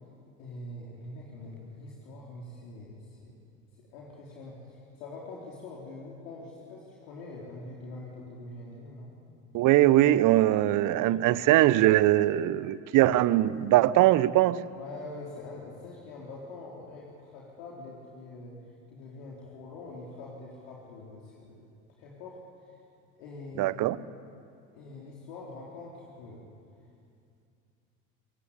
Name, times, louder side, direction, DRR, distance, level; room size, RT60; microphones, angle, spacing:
voice 1, 0.4-3.4 3.9-9.2 14.8-18.5 18.9-21.6 22.0-22.8 23.2-23.8 24.7-26.5, left 2 dB, 65° left, -4 dB, 4.4 m, -44 dB
voice 2, 9.5-14.6 23.6-24.0, right 15 dB, 45° right, 18 dB, 1.0 m, -21 dB
30.0 x 18.0 x 8.6 m, 2.4 s
hypercardioid pair, 70°, 42 cm